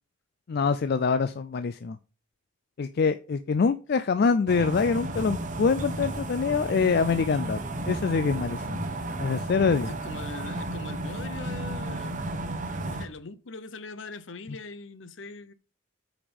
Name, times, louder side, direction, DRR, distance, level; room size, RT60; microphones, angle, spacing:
voice 1, 0.5-2.0 2.8-7.6 7.9-8.8 9.2-9.9, left 5 dB, 50° left, 0.4 m, -25 dB
sound 1, 4.5-13.1, right 1 dB, 40° right, 1.0 m, -33 dB
voice 2, 9.8-12.3 12.8-15.5, left 3 dB, 65° left, 0.8 m, -41 dB
8.7 x 5.0 x 5.2 m
head